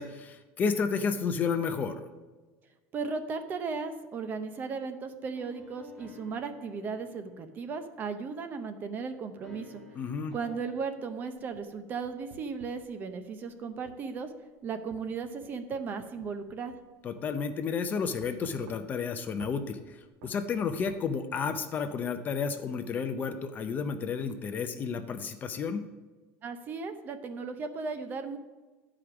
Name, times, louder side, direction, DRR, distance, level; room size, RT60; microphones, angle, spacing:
voice 1, 0.0-2.0 10.0-10.3 17.0-25.9, left 5 dB, 30° left, 8 dB, 0.6 m, -31 dB
voice 2, 2.9-9.8 10.3-14.3 14.6-16.7 26.4-28.4, right 5 dB, 30° right, 9 dB, 0.7 m, -36 dB
sound 1, 5.3-8.5 9.4-10.8, left 4 dB, 10° left, 1.3 m, -53 dB
sound 2, 11.3-12.9 13.9-14.0 14.9-16.9 17.2-17.3 18.2-19.1 19.4-19.6 20.2-21.0, right 6 dB, 85° right, 0.8 m, -51 dB
10.5 x 4.9 x 5.9 m, 1.3 s
cardioid pair, 155°, 6 cm